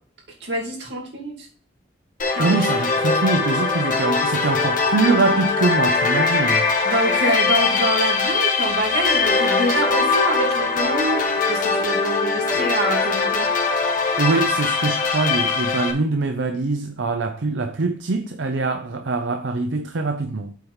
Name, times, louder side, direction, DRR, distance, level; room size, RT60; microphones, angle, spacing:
voice 1, 0.4-1.5 2.3-2.5 6.8-13.5, right 1 dB, 65° right, 2.7 m, -26 dB
sound 1, 2.2-15.9, left 4 dB, 45° left, 1.6 m, -21 dB
voice 2, 2.4-6.7 14.2-20.5, right 3 dB, 85° right, 0.6 m, -23 dB
8.2 x 4.7 x 5.6 m
head